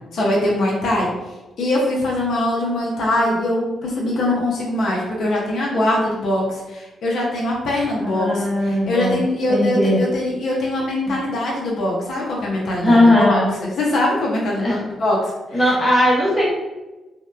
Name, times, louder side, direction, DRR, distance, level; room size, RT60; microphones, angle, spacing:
voice 1, 0.1-1.1 1.6-15.2 15.5-15.7, left 1 dB, 65° left, -3 dB, 0.5 m, -22 dB
voice 2, 8.0-9.2 9.5-10.0 12.8-13.5 14.6-14.8 15.5-16.4, left 1 dB, 20° left, -5 dB, 0.7 m, -17 dB
2.8 x 2.1 x 2.2 m, 1.1 s
cardioid pair, 110°, 0 cm